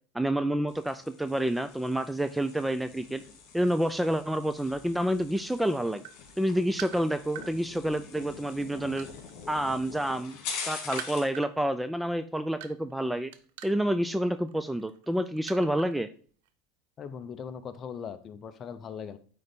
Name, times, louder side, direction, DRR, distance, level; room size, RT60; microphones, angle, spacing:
voice 1, 0.1-3.2 3.5-6.0 6.4-9.1 9.5-10.4 10.7-13.3 13.6-16.1, right 1 dB, 5° right, 11 dB, 0.4 m, -28 dB
sound 1, 0.7-11.4, left 5 dB, 60° left, 2.7 m, -44 dB
sound 2, 5.9-7.5 8.2-9.9 10.2-16.0 16.3-16.5, right 11 dB, 75° right, 0.6 m, -44 dB
voice 2, 17.0-19.2, left 7 dB, 35° left, 11 dB, 0.7 m, -40 dB
9.2 x 3.9 x 3.5 m, 0.43 s
supercardioid pair, 120°, 0 cm